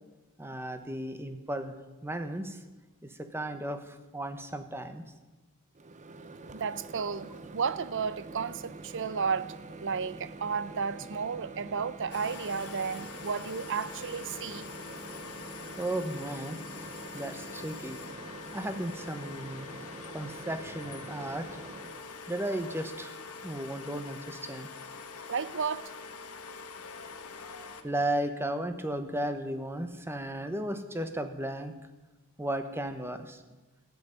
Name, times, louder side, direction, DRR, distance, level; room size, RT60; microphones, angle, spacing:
voice 1, 0.4-1.7 2.0-2.6 3.0-5.0 15.8-16.6 17.1-18.0 18.5-19.7 20.1-21.6 22.3-24.7 27.8-31.7 32.4-33.4, right 1 dB, 10° right, 1.1 m, -35 dB
Microwave oven, 5.8-22.0, right 3 dB, 35° right, 0.8 m, -46 dB
voice 2, 6.5-9.5 9.8-14.7 25.3-25.9, right 6 dB, 55° right, 0.6 m, -33 dB
sound 1, 12.1-27.8, left 5 dB, 85° left, 1.3 m, -44 dB
15.0 x 7.9 x 9.6 m
head